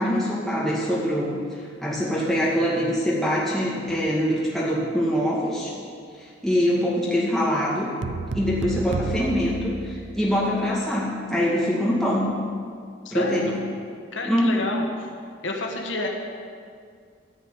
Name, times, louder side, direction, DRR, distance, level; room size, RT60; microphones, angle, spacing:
voice 1, 0.0-5.7 6.2-7.9 8.3-12.3 13.1-13.5 14.2-14.6, equal, ahead, -7 dB, 2.3 m, -24 dB
sound 1, 8.0-10.5, right 4 dB, 75° right, 0.4 m, -31 dB
voice 2, 13.0-13.5 14.1-15.1 15.4-16.1, left 2 dB, 90° left, 1 dB, 1.4 m, -29 dB
14.0 x 4.7 x 9.0 m, 2.1 s
head